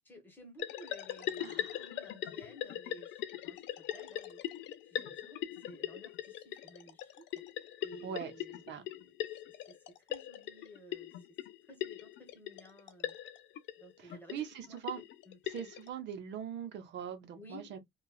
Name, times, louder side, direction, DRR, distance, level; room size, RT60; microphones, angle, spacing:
voice 1, 0.0-3.6 3.9-4.4 4.8-7.4 7.8-11.1 11.6-13.2 13.8-14.4 14.7-15.4 17.3-17.8, equal, 10° left, 1.1 m, -55 dB
sound 1, 0.6-15.9, left 12 dB, 80° left, 0.5 m, -40 dB
voice 2, 1.4-1.8 8.0-8.3 8.7-8.9 14.0-15.0 15.5-17.8, right 8 dB, 70° right, 0.8 m, -42 dB
2.9 x 2.3 x 2.2 m
cardioid pair, 175°, 18 cm